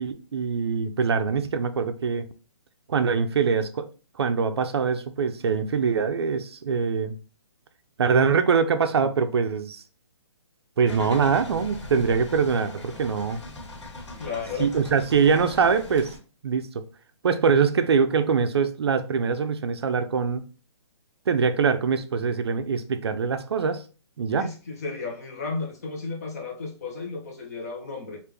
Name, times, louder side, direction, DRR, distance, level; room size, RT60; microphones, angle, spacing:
voice 1, 0.0-2.2 2.9-3.9 4.2-7.1 8.0-9.8 10.8-13.4 14.6-16.1 16.4-16.8 17.2-20.4 21.3-23.8 24.2-24.5, right 5 dB, 60° right, 0.4 m, -23 dB
sound 1, 10.8-16.2, left 2 dB, 75° left, 1.4 m, -40 dB
voice 2, 14.2-14.7 24.3-28.2, left 4 dB, 35° left, 0.7 m, -33 dB
3.3 x 2.4 x 3.3 m
hypercardioid pair, 170°, 15 cm